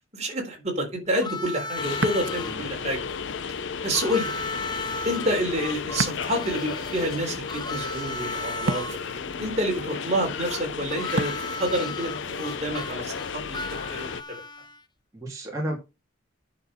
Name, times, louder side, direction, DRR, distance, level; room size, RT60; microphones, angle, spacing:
voice 1, 0.1-3.0 3.8-4.4 5.0-13.6 13.9-14.4, equal, 35° right, 3.8 m, -28 dB
Harmonica, 1.1-2.6 3.9-8.9 10.9-14.8, left 2 dB, 20° left, 0.6 m, -35 dB
sound 1, 1.8-14.2, left 6 dB, 70° left, 0.6 m, -34 dB
Ocean, 1.9-13.1, right 2 dB, 70° right, 1.1 m, -37 dB
voice 2, 15.1-15.8, right 1 dB, 15° right, 3.2 m, -33 dB
9.8 x 6.5 x 5.5 m
head